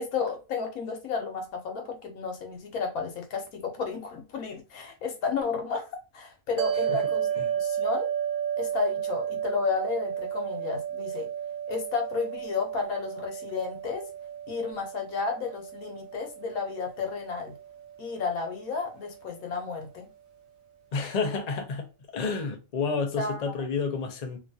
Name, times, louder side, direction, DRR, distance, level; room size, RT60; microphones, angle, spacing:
voice 1, 0.0-5.9 6.1-7.3 7.5-8.1 8.6-11.3 11.7-14.0 14.5-17.5 18.0-20.1 23.2-23.5, left 5 dB, 90° left, 1.3 m, -32 dB
sound 1, 6.6-19.1, right 9 dB, 75° right, 1.1 m, -33 dB
voice 2, 20.9-21.9 22.1-24.4, left 4 dB, 45° left, 0.5 m, -30 dB
3.0 x 2.3 x 2.6 m
omnidirectional pair, 1.4 m